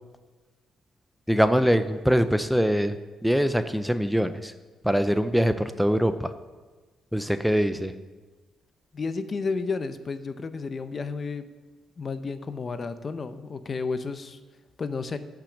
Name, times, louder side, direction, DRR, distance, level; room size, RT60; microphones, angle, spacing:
voice 1, 1.3-3.0 3.2-4.5 4.8-6.3 7.1-7.9, equal, ahead, 10 dB, 0.5 m, -23 dB
voice 2, 8.9-11.5 12.0-14.4 14.8-15.2, left 4 dB, 40° left, 11 dB, 0.7 m, -32 dB
11.5 x 6.0 x 7.1 m, 1.3 s
cardioid pair, 90°, 0 cm